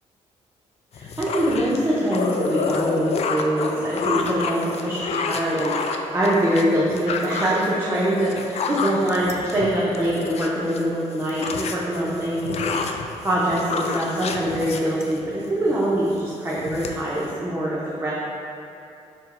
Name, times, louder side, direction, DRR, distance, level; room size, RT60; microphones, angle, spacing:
sound 1, 0.9-10.8 11.1-15.5 15.9-16.2 16.5-17.3, left 4 dB, 50° left, 0.4 m, -29 dB
voice 1, 0.9-18.1, right 1 dB, 15° right, -7 dB, 0.7 m, -24 dB
4.4 x 2.2 x 4.3 m, 2.7 s
supercardioid pair, 60°, 14 cm